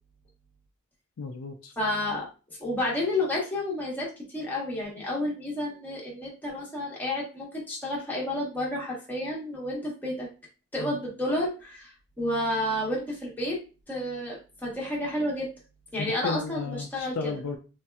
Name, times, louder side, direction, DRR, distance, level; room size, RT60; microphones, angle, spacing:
voice 1, 1.2-1.7 10.8-11.0 16.0-17.6, left 4 dB, 65° left, 4 dB, 0.4 m, -34 dB
voice 2, 1.8-2.2 2.6-10.3 10.7-11.9 12.2-13.6 13.9-15.5 15.9-17.3, left 1 dB, 10° left, -5 dB, 1.0 m, -30 dB
3.1 x 2.8 x 2.2 m, 0.33 s
head